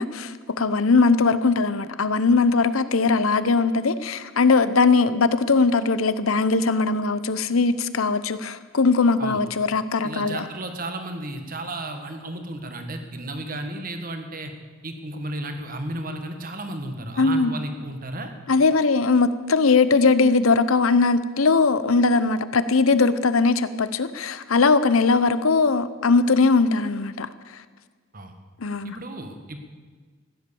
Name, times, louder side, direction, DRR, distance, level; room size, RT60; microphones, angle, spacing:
voice 1, 0.0-10.4 17.2-17.5 18.5-27.3 28.6-29.0, left 4 dB, 90° left, 14 dB, 0.8 m, -20 dB
voice 2, 10.0-14.5 14.8-18.3 28.1-28.3 28.8-29.6, right 1 dB, 45° right, 6 dB, 1.7 m, -33 dB
15.5 x 11.0 x 7.0 m, 1.5 s
head